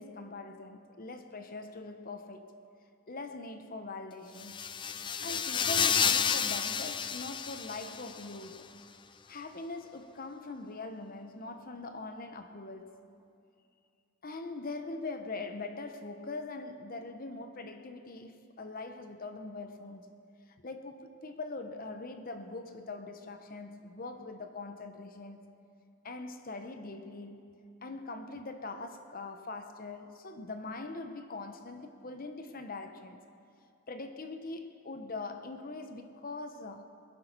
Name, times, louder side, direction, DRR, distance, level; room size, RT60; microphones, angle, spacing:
voice 1, 0.0-2.5 3.1-4.6 5.2-8.7 9.3-13.0 14.2-20.1 20.5-25.5 26.0-27.5 27.8-33.2 33.9-36.9, left 3 dB, 40° left, 0.9 m, -42 dB
sound 1, 4.4-8.3, left 7 dB, 20° left, 0.4 m, -30 dB
21.5 x 10.5 x 5.9 m
head